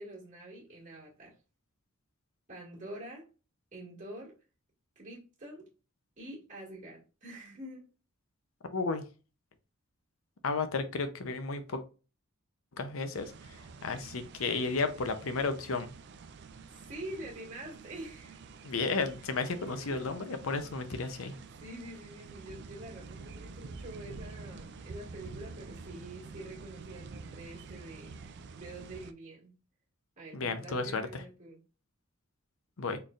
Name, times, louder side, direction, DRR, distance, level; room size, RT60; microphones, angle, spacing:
voice 1, 0.0-1.3 2.5-3.3 3.7-4.3 5.0-5.6 6.2-7.9 16.7-18.4 19.6-20.1 21.6-28.2 28.5-29.6 30.2-31.6, right 1 dB, 40° right, 2.0 m, -46 dB
voice 2, 8.7-9.1 10.4-11.8 12.7-15.9 18.6-21.3 30.3-31.2 32.8-33.0, left 4 dB, 90° left, 0.7 m, -33 dB
sound 1, 13.1-29.1, right 4 dB, 60° right, 0.4 m, -48 dB
4.1 x 3.3 x 2.4 m
head